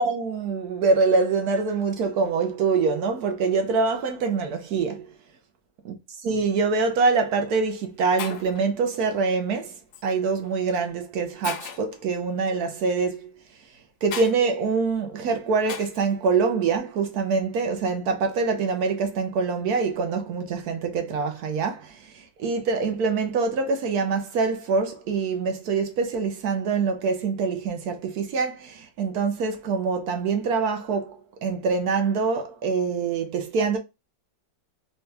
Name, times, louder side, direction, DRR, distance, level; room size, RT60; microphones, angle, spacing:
voice 1, 0.0-5.0 5.8-6.0 6.2-9.7 10.0-13.3 14.0-33.8, right 4 dB, 70° right, 1.0 m, -25 dB
Shatter, 7.0-7.2 7.9-8.0 8.2-8.6 9.9-10.1 10.8-10.9 11.4-12.0 14.1-14.4 15.7-16.1, left 8 dB, 70° left, 1.0 m, -35 dB
4.3 x 2.3 x 3.2 m
omnidirectional pair, 2.0 m